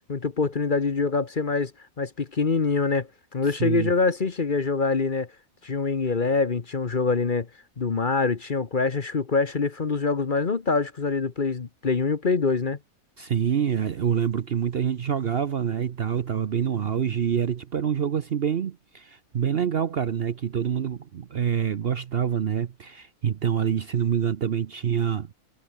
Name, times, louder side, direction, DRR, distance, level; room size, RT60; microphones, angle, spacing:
voice 1, 0.1-1.7 2.0-5.3 5.6-7.5 7.8-12.8, left 4 dB, 40° left, 1.2 m, -25 dB
voice 2, 3.6-3.9 13.2-25.3, right 8 dB, 50° right, 0.8 m, -26 dB
omnidirectional pair, 1.5 m